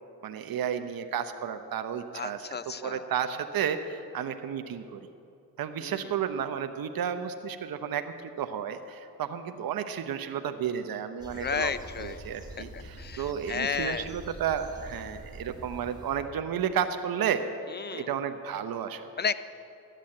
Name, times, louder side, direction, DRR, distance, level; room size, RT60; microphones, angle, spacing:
voice 1, 0.2-2.5 2.8-5.1 5.6-11.7 12.0-17.4 17.9-19.1, right 8 dB, 65° right, 8 dB, 0.8 m, -32 dB
voice 2, 2.1-3.1 5.8-6.1 11.3-12.2 12.6-14.1 17.7-18.1 19.2-19.3, left 6 dB, 25° left, 14 dB, 0.6 m, -33 dB
sound 1, 11.2-16.2, right 1 dB, 10° right, 2.9 m, -45 dB
13.0 x 9.2 x 7.7 m, 2.6 s
cardioid pair, 60°, 39 cm